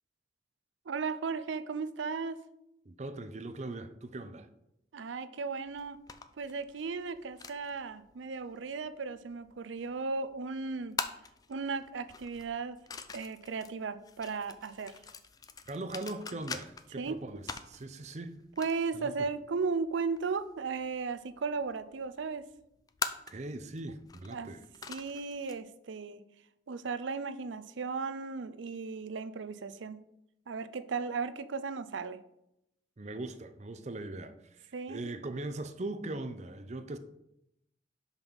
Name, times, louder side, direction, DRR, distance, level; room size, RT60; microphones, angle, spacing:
voice 1, 0.9-2.4 4.9-6.0 6.4-11.0 11.5-12.8 13.1-15.0 17.0-17.2 18.6-22.4 24.3-24.5 24.9-26.2 26.7-30.0 30.5-32.2 34.7-35.0, right 4 dB, 85° right, 0.5 m, -36 dB
voice 2, 2.9-4.5 15.7-18.4 18.9-19.1 23.3-24.6 33.0-37.0, right 2 dB, 40° right, 0.6 m, -40 dB
sound 1, 5.7-25.6, left 5 dB, 20° left, 0.4 m, -45 dB
5.6 x 5.3 x 6.1 m
head